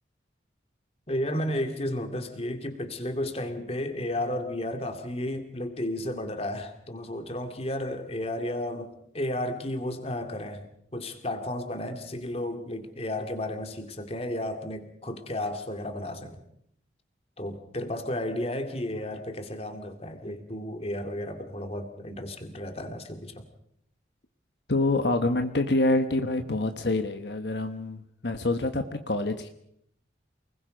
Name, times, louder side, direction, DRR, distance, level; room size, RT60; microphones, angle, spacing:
voice 1, 1.1-10.7 10.9-16.4 17.4-23.5, left 1 dB, 35° left, 6 dB, 2.3 m, -33 dB
voice 2, 24.7-29.5, left 2 dB, 70° left, 7 dB, 1.3 m, -26 dB
28.5 x 20.5 x 5.2 m, 0.72 s
head